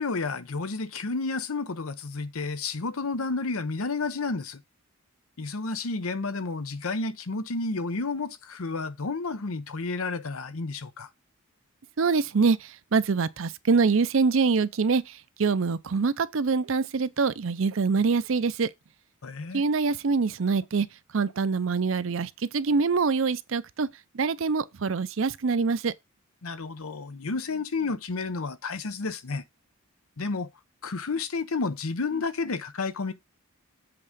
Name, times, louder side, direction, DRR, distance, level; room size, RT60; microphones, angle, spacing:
voice 1, 0.0-4.6 5.4-11.1 19.2-19.6 26.4-29.4 30.2-30.5 30.8-33.1, left 3 dB, 80° left, 0.8 m, -31 dB
voice 2, 12.0-18.7 19.5-20.9 21.1-23.9 24.1-25.9, right 4 dB, 65° right, 0.5 m, -25 dB
7.8 x 3.7 x 6.6 m
head